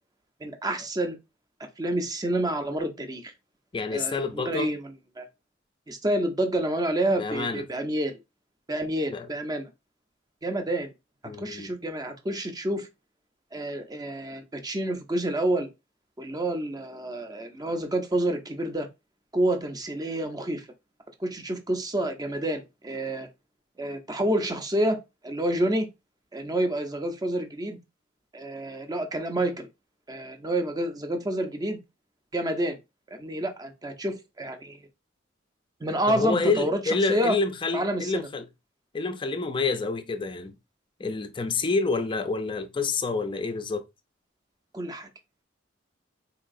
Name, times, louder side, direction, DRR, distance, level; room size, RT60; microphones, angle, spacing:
voice 1, 0.4-1.2 1.8-3.3 3.9-4.8 5.2-5.3 5.9-8.1 8.7-9.7 10.4-10.9 11.4-12.9 13.5-15.7 16.2-18.9 19.3-20.7 21.2-23.3 23.8-25.0 25.2-25.9 26.3-27.8 28.3-29.7 30.1-31.8 32.3-32.8 33.1-34.8 35.8-37.4 37.7-38.3 44.7-45.1, right 1 dB, 20° right, 0.6 m, -28 dB
voice 2, 3.7-4.7 7.2-7.6 9.1-9.3 11.2-11.7 36.1-38.5 38.9-40.6 41.0-43.8, left 4 dB, 25° left, 0.4 m, -28 dB
3.9 x 2.9 x 2.5 m
head